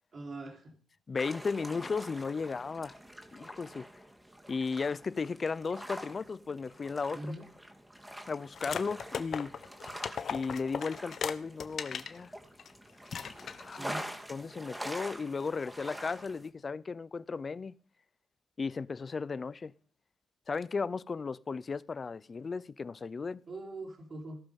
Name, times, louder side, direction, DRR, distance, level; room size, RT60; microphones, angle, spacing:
voice 1, 0.1-0.8 7.1-7.5 13.8-14.2 23.5-24.4, right 1 dB, 40° right, 4.3 m, -42 dB
voice 2, 1.1-3.0 3.3-3.9 4.5-7.3 8.3-9.5 10.3-12.3 13.4-13.9 14.3-17.8 18.6-19.7 20.5-23.4, left 4 dB, 35° left, 0.7 m, -35 dB
sound 1, 1.1-16.5, equal, 5° right, 2.5 m, -46 dB
sound 2, 8.6-12.2 12.6-12.7 13.1-13.8, left 7 dB, 55° left, 1.2 m, -38 dB
17.5 x 12.0 x 5.4 m
cardioid pair, 90°, 0 cm